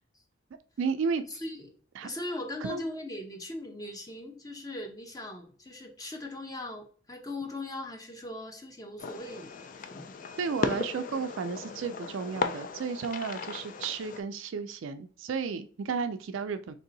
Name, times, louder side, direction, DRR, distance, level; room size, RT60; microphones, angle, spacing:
voice 1, 0.8-1.2 2.0-2.1 2.6-2.8 10.4-16.7, right 5 dB, 70° right, 0.4 m, -33 dB
voice 2, 1.3-1.7 2.0-10.2, left 1 dB, 20° left, 0.7 m, -39 dB
Fireworks, 9.0-14.2, left 4 dB, 40° left, 0.3 m, -36 dB
3.3 x 2.7 x 3.9 m
head